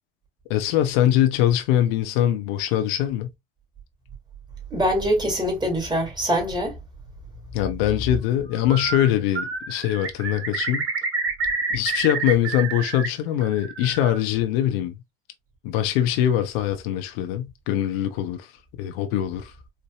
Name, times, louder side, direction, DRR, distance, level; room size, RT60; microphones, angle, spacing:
voice 1, 0.5-3.3 7.5-10.8 11.7-14.9 15.6-18.5 18.8-19.5, left 11 dB, 75° left, 0.7 m, -23 dB
voice 2, 4.7-6.8, equal, 15° right, 2.1 m, -23 dB
Bird, 8.5-9.1 9.3-13.1 13.4-14.2, right 4 dB, 50° right, 1.6 m, -28 dB
4.4 x 2.6 x 2.3 m
hypercardioid pair, 70°, 29 cm